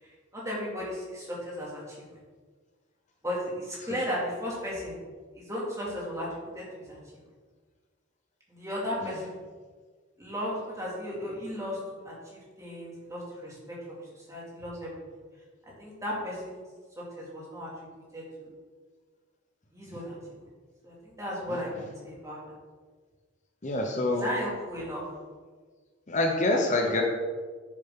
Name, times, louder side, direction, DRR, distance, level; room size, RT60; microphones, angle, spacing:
voice 1, 0.0-2.2 3.2-5.0 5.3-7.0 8.5-9.4 10.2-11.8 12.0-14.9 15.8-16.6 17.0-18.5 19.7-20.2 20.8-22.4 24.1-25.0, equal, 15° right, -5 dB, 2.6 m, -35 dB
voice 2, 23.6-24.3 26.1-27.0, left 2 dB, 40° left, 1 dB, 0.9 m, -26 dB
9.1 x 7.5 x 3.9 m, 1.5 s
head